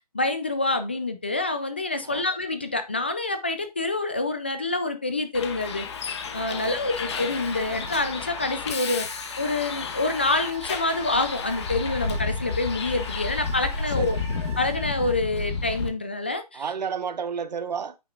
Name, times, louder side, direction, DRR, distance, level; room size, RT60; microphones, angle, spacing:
voice 1, 0.1-5.9 6.3-9.1 9.4-14.2 14.6-16.6, left 2 dB, 15° left, 0.3 m, -27 dB
Bus, 5.3-15.9, left 4 dB, 45° left, 1.2 m, -32 dB
voice 2, 6.5-6.8 14.0-14.2 16.5-18.0, right 6 dB, 90° right, 1.0 m, -31 dB
sound 1, 6.9-15.1, right 5 dB, 25° right, 1.8 m, -44 dB
9.0 x 5.8 x 2.4 m
hypercardioid pair, 170°, 21 cm